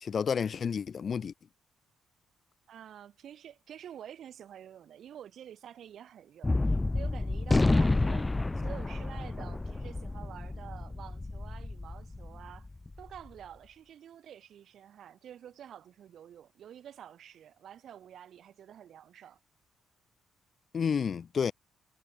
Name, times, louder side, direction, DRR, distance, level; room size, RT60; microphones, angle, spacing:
voice 1, 0.0-1.3 20.7-21.5, left 6 dB, 55° left, 0.9 m, -30 dB
voice 2, 2.7-8.3 8.6-12.7 13.0-19.4, right 10 dB, 70° right, 7.8 m, -49 dB
Gunshot gunfire, 6.4-13.0, left 2 dB, 20° left, 0.6 m, -29 dB
supercardioid pair, 65°, 0 cm